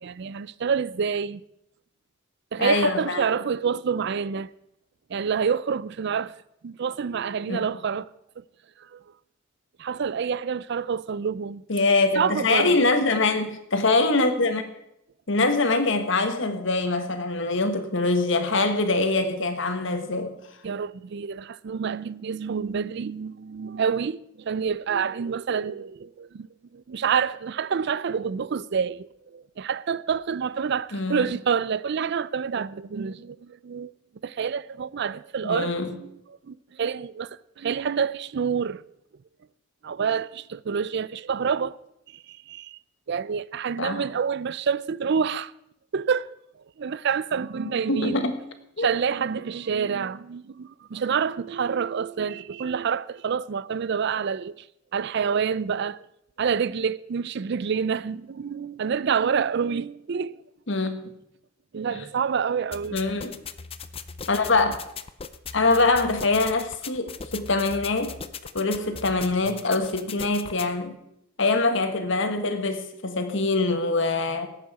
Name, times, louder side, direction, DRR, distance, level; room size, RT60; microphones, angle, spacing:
voice 1, 0.0-1.4 2.5-4.5 5.1-6.3 6.6-8.1 8.8-9.0 9.8-11.6 12.2-12.9 20.6-26.5 26.7-33.9 34.2-38.8 39.8-41.7 42.1-42.8 43.1-45.5 45.9-46.3 46.8-48.2 48.8-54.7 54.9-56.1 56.4-60.4 61.7-63.0 70.1-70.2, right 6 dB, 55° right, 0.4 m, -27 dB
voice 2, 2.6-3.2 7.5-7.7 11.7-14.6 15.3-20.3 30.9-31.2 35.4-35.9 43.8-44.0 47.9-48.4 48.8-48.9 60.7-61.0 61.9-62.0 62.9-63.4 64.3-64.8 65.5-68.2 68.5-71.0 71.4-74.5, left 3 dB, 60° left, 1.5 m, -24 dB
sound 1, 62.7-70.7, left 6 dB, 30° left, 0.5 m, -39 dB
18.0 x 8.2 x 4.9 m
head